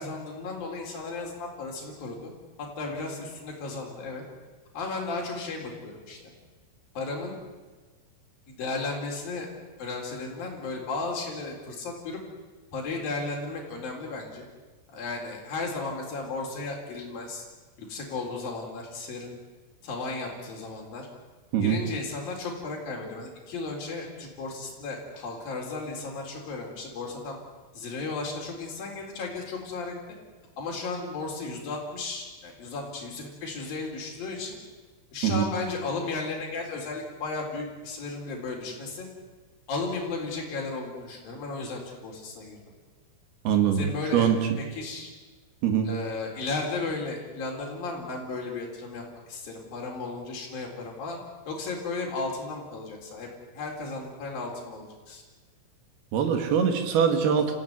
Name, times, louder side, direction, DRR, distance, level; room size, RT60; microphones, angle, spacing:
voice 1, 0.0-2.3 2.6-4.2 4.7-6.3 7.0-7.4 8.5-9.5 9.8-12.2 12.7-14.5 14.9-17.5 17.8-19.4 19.8-21.1 21.6-27.4 27.7-29.9 30.6-34.6 35.1-39.1 39.7-42.6 43.8-45.1 45.9-51.2 51.5-53.3 53.5-55.2, left 3 dB, 45° left, -1 dB, 5.6 m, -34 dB
voice 2, 43.4-44.6 45.6-45.9 56.1-57.5, right 8 dB, 60° right, 6 dB, 3.1 m, -23 dB
26.5 x 15.5 x 9.7 m, 1.3 s
omnidirectional pair, 6.0 m